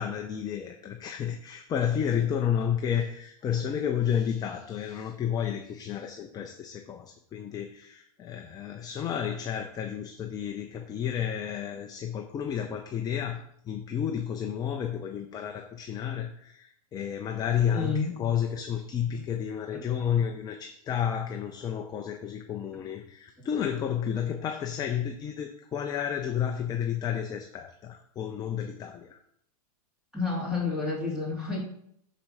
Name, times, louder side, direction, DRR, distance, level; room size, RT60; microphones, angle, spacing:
voice 1, 0.0-29.2, left 8 dB, 20° left, 4 dB, 0.6 m, -31 dB
voice 2, 17.7-18.1 30.1-31.6, left 4 dB, 5° right, -5 dB, 3.0 m, -29 dB
6.0 x 4.2 x 5.5 m, 0.70 s
hypercardioid pair, 135°, 20 cm